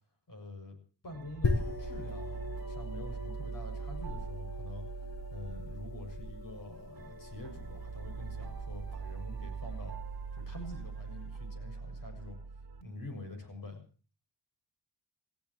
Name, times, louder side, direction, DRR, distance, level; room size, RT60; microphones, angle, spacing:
voice 1, 0.3-0.8 1.0-9.9 10.3-12.4 12.8-13.9, left 2 dB, 50° left, 5 dB, 7.1 m, -46 dB
sound 1, 1.1-12.8, right 6 dB, 60° right, 1.5 m, -42 dB
sound 2, 1.4-10.8, left 3 dB, 90° left, 4.0 m, -40 dB
29.5 x 15.5 x 3.0 m, 0.39 s
wide cardioid pair, 140°, 41 cm